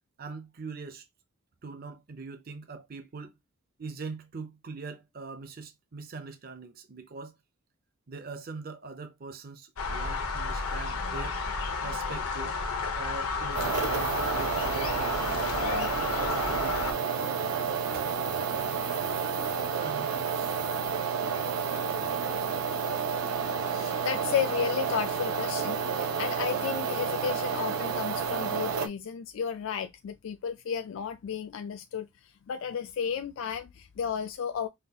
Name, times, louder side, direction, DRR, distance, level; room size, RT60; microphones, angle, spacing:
voice 1, 0.2-1.1 1.6-3.3 3.8-7.3 8.1-11.4 11.8-12.6 13.0-15.2 15.9-17.4 17.9-18.0 19.8-20.8, right 4 dB, 40° right, 0.5 m, -42 dB
sound 1, 9.8-16.9, left 4 dB, 85° left, 0.9 m, -32 dB
sound 2, 13.5-28.9, right 6 dB, 85° right, 0.7 m, -30 dB
voice 2, 23.7-34.7, left 7 dB, 65° left, 0.3 m, -33 dB
5.6 x 2.3 x 2.8 m
head